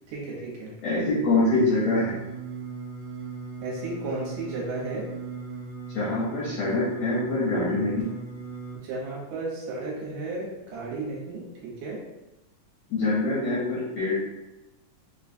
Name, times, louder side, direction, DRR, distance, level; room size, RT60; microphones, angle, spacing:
voice 1, 0.1-0.7 3.6-5.0 8.8-12.0, right 2 dB, 75° right, -4 dB, 2.3 m, -34 dB
voice 2, 0.8-2.1 5.9-8.0 12.9-14.1, left 2 dB, 75° left, -7 dB, 1.5 m, -24 dB
Singing, 1.5-8.8, right 4 dB, 55° right, 1.9 m, -38 dB
5.2 x 2.3 x 2.6 m, 1.0 s
omnidirectional pair, 3.9 m